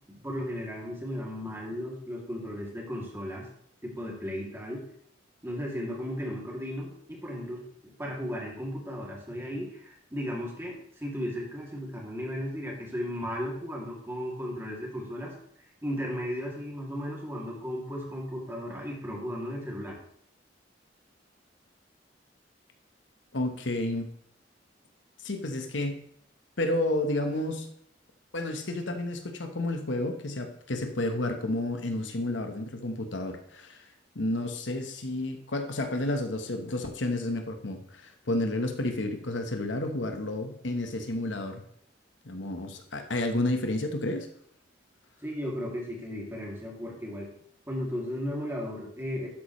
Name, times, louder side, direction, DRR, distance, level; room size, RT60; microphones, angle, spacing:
voice 1, 0.1-3.5 3.8-4.8 5.4-15.3 15.8-20.0 45.2-47.3 47.7-49.3, equal, 15° right, -2 dB, 2.6 m, -35 dB
voice 2, 23.3-24.1 25.2-26.0 26.6-27.7 28.3-33.9 34.1-41.6 42.2-44.3, left 1 dB, 80° left, 5 dB, 1.2 m, -31 dB
12.0 x 8.6 x 3.2 m, 0.66 s
head